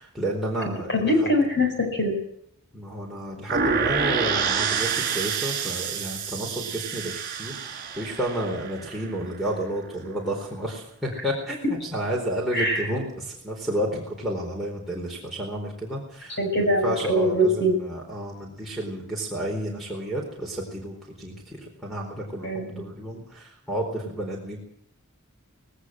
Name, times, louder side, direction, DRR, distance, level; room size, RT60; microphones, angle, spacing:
voice 1, 0.0-1.3 2.7-24.6, right 1 dB, ahead, -4 dB, 4.2 m, -31 dB
voice 2, 0.6-2.2 12.5-12.9 16.4-17.8 22.4-22.8, equal, 55° left, 4 dB, 6.6 m, -23 dB
sound 1, 3.5-9.4, right 6 dB, 40° right, 5.0 m, -28 dB
19.0 x 18.0 x 7.7 m, 0.71 s
head